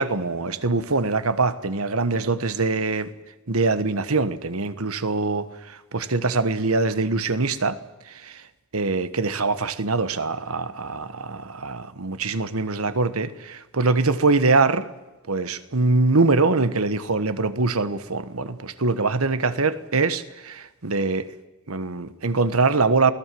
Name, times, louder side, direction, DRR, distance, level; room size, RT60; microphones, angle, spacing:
voice 1, 0.0-3.1 3.5-7.8 8.1-8.4 8.7-14.9 15.3-21.3 21.7-23.1, right 3 dB, 90° right, 1.3 m, -23 dB
28.0 x 18.5 x 7.7 m
head